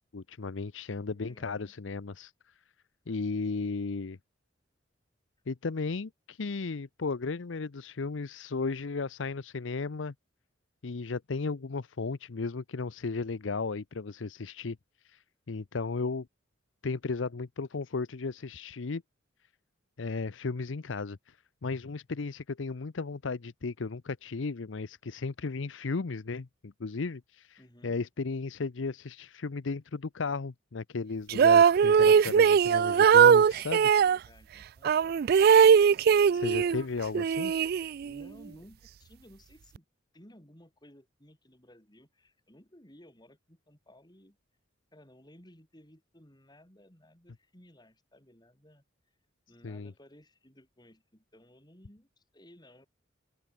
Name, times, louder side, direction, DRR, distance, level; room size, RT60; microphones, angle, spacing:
voice 1, 0.1-2.3 3.1-4.2 5.5-10.1 10.8-14.8 15.1-15.2 15.5-16.3 16.8-19.0 20.0-21.2 21.6-33.8 36.3-37.5 49.6-49.9, left 4 dB, 75° left, 0.7 m, -35 dB
voice 2, 1.1-1.7 27.6-27.9 31.8-32.3 32.8-34.9 38.0-39.8 40.1-44.4 44.9-48.8 49.5-52.9, left 1 dB, 20° left, 6.6 m, -57 dB
sound 1, 31.3-34.2 34.8-36.8 37.1-38.2, right 7 dB, 50° right, 0.3 m, -20 dB
open air
head